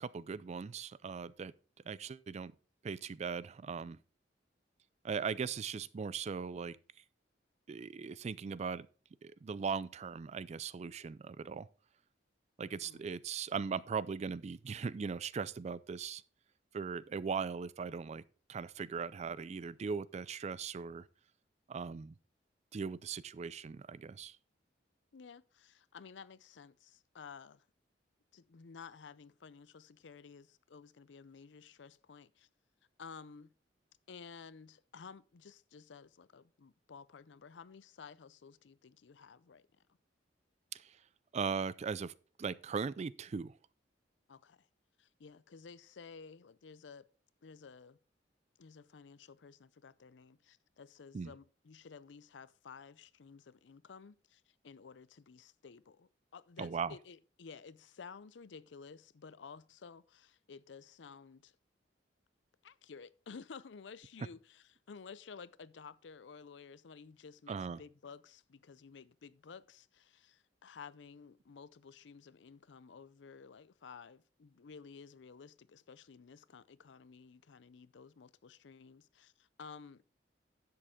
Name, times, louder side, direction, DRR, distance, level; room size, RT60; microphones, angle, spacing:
voice 1, 0.0-1.5 1.9-2.5 2.8-4.0 5.0-6.8 7.7-8.9 9.2-11.7 12.6-16.2 16.7-18.2 18.5-21.1 21.7-22.1 22.7-24.4 40.7-41.0 41.3-42.1 42.4-43.6 51.1-51.3 56.6-56.9 67.5-67.8, right 5 dB, 40° right, 0.3 m, -39 dB
voice 2, 12.6-13.0 25.1-27.7 28.3-32.5 33.0-33.5 34.1-39.7 44.3-44.7 45.0-47.1 47.4-48.0 48.6-61.5 62.6-80.0, left 5 dB, 75° left, 0.5 m, -53 dB
11.0 x 7.7 x 3.6 m
head